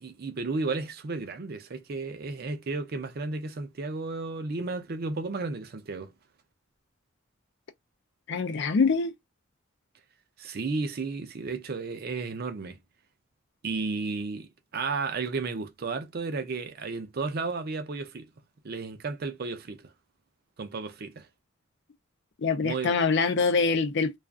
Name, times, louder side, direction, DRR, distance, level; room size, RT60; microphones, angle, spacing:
voice 1, 0.0-6.1 10.4-12.8 13.6-18.3 18.6-19.9 20.6-21.3 22.6-23.0, right 3 dB, 50° right, 0.5 m, -33 dB
voice 2, 8.3-9.1 22.4-24.2, left 4 dB, 60° left, 0.4 m, -24 dB
2.4 x 2.3 x 2.3 m
head